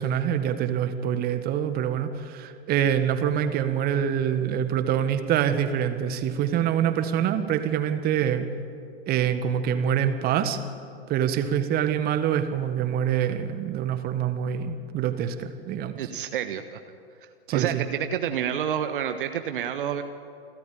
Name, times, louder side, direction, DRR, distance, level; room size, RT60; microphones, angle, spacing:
voice 1, 0.0-8.5 9.1-10.6 11.1-16.0 17.5-17.8, right 9 dB, 30° right, 9 dB, 1.7 m, -25 dB
voice 2, 16.0-16.8 17.5-20.0, right 9 dB, 55° right, 8 dB, 1.3 m, -28 dB
28.5 x 13.0 x 8.7 m, 2.3 s
figure-of-eight pair, 105°, 31 cm